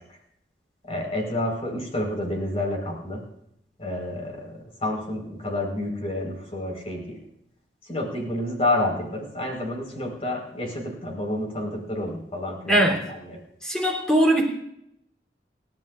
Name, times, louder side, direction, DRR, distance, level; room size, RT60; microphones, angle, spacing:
voice 1, 0.9-3.2 3.8-7.2 7.9-12.8 13.3-13.4, left 1 dB, 35° left, 1 dB, 4.8 m, -29 dB
voice 2, 12.7-13.1 13.6-14.5, right 1 dB, 5° left, 0 dB, 3.5 m, -20 dB
29.0 x 13.0 x 2.6 m, 0.77 s
head